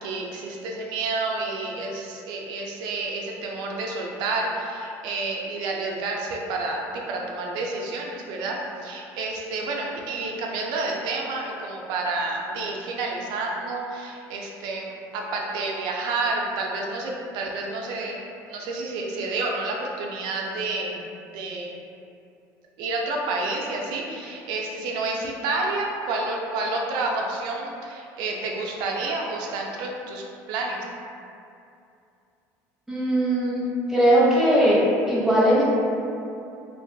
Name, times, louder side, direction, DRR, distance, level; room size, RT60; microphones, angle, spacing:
voice 1, 0.0-18.2 18.5-21.1 21.3-21.7 22.8-30.8, right 3 dB, 70° right, -1 dB, 0.4 m, -29 dB
voice 2, 32.9-33.6 33.9-34.8 35.1-35.6, right 1 dB, 5° right, -8 dB, 0.8 m, -19 dB
2.5 x 2.2 x 2.6 m, 2.6 s
supercardioid pair, 85°, 8 cm